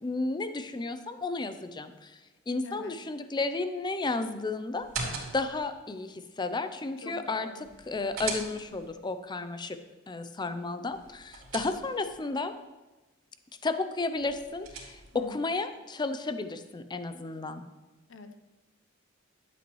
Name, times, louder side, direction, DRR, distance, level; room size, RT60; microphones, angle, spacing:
voice 1, 0.0-2.2 2.5-4.9 5.3-7.5 7.9-9.8 10.1-12.5 13.6-17.6, left 3 dB, 20° left, 10 dB, 0.5 m, -33 dB
voice 2, 2.6-3.0 7.0-7.6 15.1-15.4 18.1-18.3, left 3 dB, 65° left, 8 dB, 0.7 m, -44 dB
sound 1, 4.8-5.7 7.7-8.9 10.9-12.2 14.2-15.3, right 4 dB, 80° right, 2.8 m, -40 dB
12.0 x 7.9 x 3.1 m, 1.1 s
head